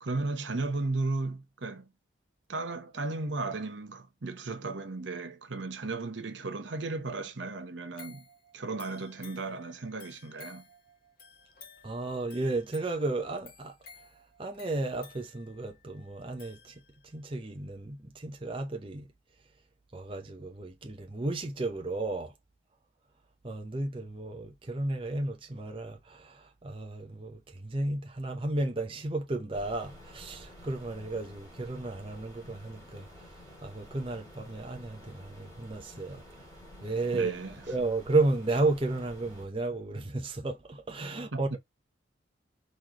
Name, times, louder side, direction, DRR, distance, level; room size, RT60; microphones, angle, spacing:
voice 1, 0.0-1.9 2.5-8.2 8.5-10.7 37.1-37.5 41.3-41.6, right 3 dB, 70° right, 0.9 m, -35 dB
sound 1, 8.0-17.2 17.7-17.8, left 5 dB, 50° left, 1.3 m, -54 dB
voice 2, 11.8-19.1 19.9-22.3 23.4-36.4 36.8-37.3 37.7-41.6, right 2 dB, 25° right, 0.6 m, -33 dB
sound 2, 29.5-39.5, left 1 dB, 15° left, 2.0 m, -51 dB
3.9 x 3.1 x 2.8 m
head